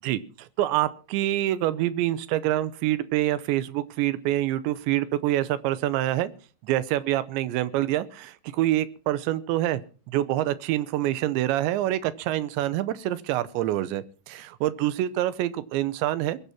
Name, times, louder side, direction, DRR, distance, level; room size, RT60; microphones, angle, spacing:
voice 1, 0.0-6.3 6.6-9.8 10.1-16.4, right 14 dB, 80° right, 15 dB, 2.9 m, -26 dB
22.0 x 8.4 x 5.8 m, 0.38 s
omnidirectional pair, 5.5 m